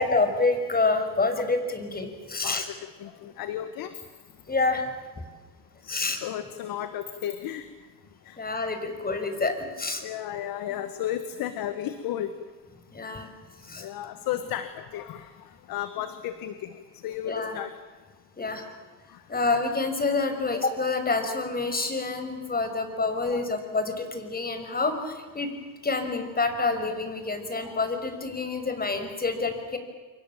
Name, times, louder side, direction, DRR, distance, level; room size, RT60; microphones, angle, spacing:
voice 1, 0.0-2.7 4.5-4.9 5.9-6.2 8.4-10.0 12.9-13.3 13.6-13.9 17.2-17.6 18.4-18.7 19.3-25.5 25.8-29.8, left 3 dB, 25° left, 7 dB, 6.1 m, -27 dB
voice 2, 3.0-3.9 5.9-7.6 8.3-8.4 10.0-12.3 13.8-15.3 15.7-16.7 17.0-17.7 23.0-23.4, left 11 dB, 80° left, 10 dB, 1.7 m, -33 dB
28.5 x 24.5 x 7.5 m, 1.4 s
cardioid pair, 85°, 34 cm